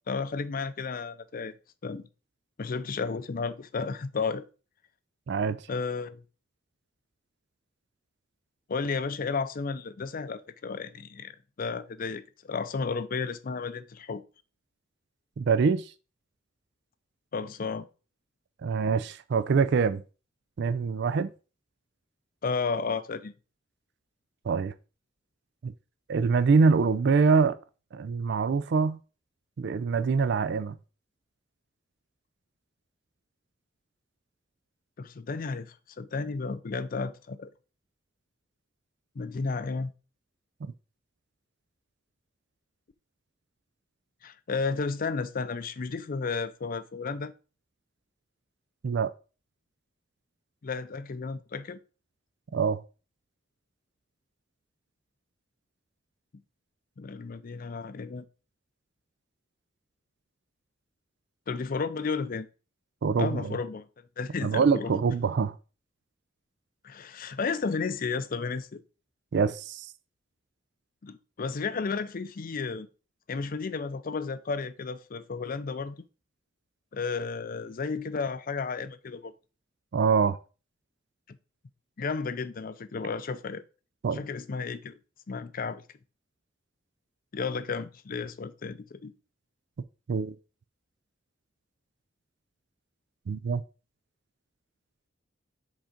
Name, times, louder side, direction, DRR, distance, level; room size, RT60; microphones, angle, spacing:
voice 1, 0.1-1.5 1.8-2.0 2.6-4.4 5.7-6.2 8.7-14.2 17.3-17.9 22.4-23.3 35.0-37.5 39.2-39.9 44.2-47.3 50.6-51.8 57.0-58.2 61.5-62.5 63.2-63.9 64.2-64.9 66.8-68.8 71.0-72.9 73.3-76.0 76.9-79.3 81.3-81.4 82.0-83.6 84.1-85.0 85.3-85.8 87.3-89.1, left 4 dB, 50° left, 0.5 m, -33 dB
voice 2, 15.4-15.8 18.6-20.0 20.6-21.3 24.5-24.7 25.6-25.7 26.1-27.6 27.9-29.0 29.6-30.7 48.8-49.1 52.5-52.8 63.0-63.5 64.4-65.6 69.3-69.9 79.9-80.4 84.0-84.2 90.1-90.3 93.3-93.6, right 5 dB, 65° right, 0.4 m, -24 dB
5.2 x 3.7 x 5.1 m
head